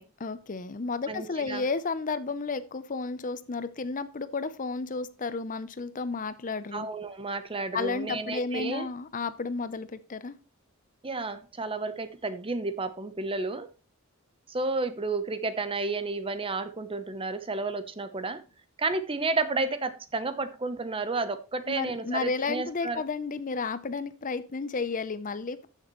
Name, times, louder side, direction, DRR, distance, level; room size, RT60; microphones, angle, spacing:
voice 1, 0.2-6.9 7.7-10.4 21.7-25.7, left 4 dB, 40° left, 0.6 m, -32 dB
voice 2, 1.1-1.6 6.7-8.9 11.0-13.7 14.5-18.4 18.8-23.0, right 3 dB, 25° right, 0.8 m, -31 dB
14.0 x 6.7 x 3.1 m
head